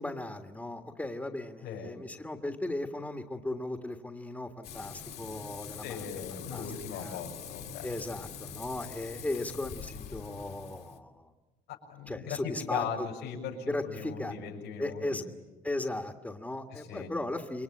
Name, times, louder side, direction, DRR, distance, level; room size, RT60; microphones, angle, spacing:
voice 1, 0.0-6.0 6.5-7.2 7.8-11.3 12.1-13.1 13.7-14.3 14.8-15.2 15.6-17.6, left 2 dB, 10° left, 4 dB, 1.7 m, -36 dB
Frying (food), 4.6-11.0, left 7 dB, 65° left, 2.5 m, -44 dB
voice 2, 5.8-7.9 11.7-15.2 16.7-17.1, left 7 dB, 90° left, 0 dB, 6.8 m, -39 dB
28.0 x 23.0 x 8.7 m, 1.2 s
cardioid pair, 110°, 17 cm